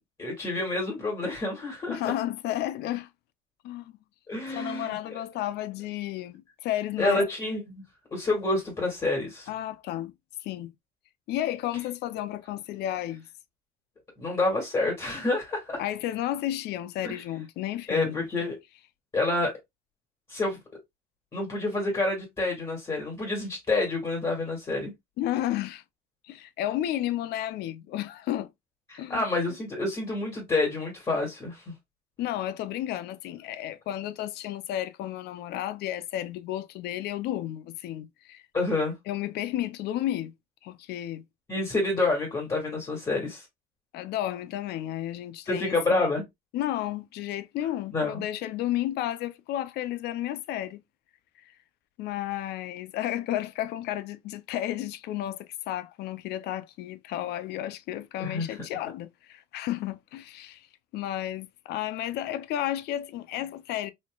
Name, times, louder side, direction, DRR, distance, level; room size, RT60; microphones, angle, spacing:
voice 1, 0.2-2.0 4.3-5.0 7.0-7.8 8.1-9.5 14.2-15.8 17.0-17.2 17.9-18.5 19.1-19.6 20.3-20.6 21.3-24.9 28.9-31.6 38.5-38.9 41.5-43.4 45.5-46.2 47.9-48.2 58.2-58.5, left 2 dB, 30° left, 2.0 m, -28 dB
voice 2, 1.9-3.1 3.6-4.0 4.5-7.3 9.5-10.1 10.4-10.7 11.3-13.2 15.8-18.2 25.2-25.8 26.2-28.5 29.0-29.2 32.2-38.4 39.1-40.3 40.6-41.2 43.9-46.0 46.5-50.8 51.4-51.5 52.0-60.7 60.9-63.9, left 13 dB, 75° left, 0.5 m, -32 dB
4.1 x 3.0 x 2.3 m
cardioid pair, 110°, 17 cm